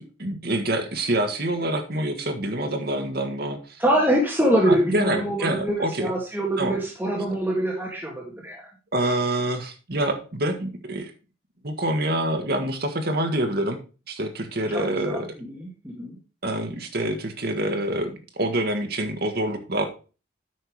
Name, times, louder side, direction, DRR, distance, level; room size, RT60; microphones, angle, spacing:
voice 1, 0.0-3.8 4.6-6.1 6.6-6.8 8.9-11.1 11.6-13.8 14.1-15.3 16.4-19.9, right 1 dB, 50° right, 6 dB, 1.5 m, -26 dB
voice 2, 3.8-8.6 14.7-15.2 15.5-16.2, right 1 dB, 10° right, -3 dB, 1.7 m, -24 dB
9.1 x 5.5 x 4.7 m, 0.33 s
head